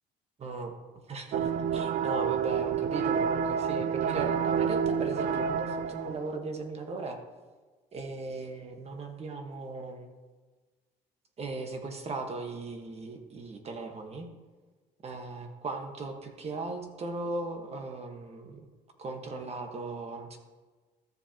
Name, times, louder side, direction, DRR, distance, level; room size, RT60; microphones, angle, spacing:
voice 1, 0.4-0.8 1.1-7.2 7.9-10.1 11.4-14.3 15.0-18.7 19.0-20.4, right 3 dB, 40° right, 4 dB, 1.4 m, -37 dB
sound 1, 1.3-6.3, right 7 dB, 55° right, 0.4 m, -29 dB
13.5 x 7.5 x 2.9 m, 1.3 s
cardioid pair, 110°, 17 cm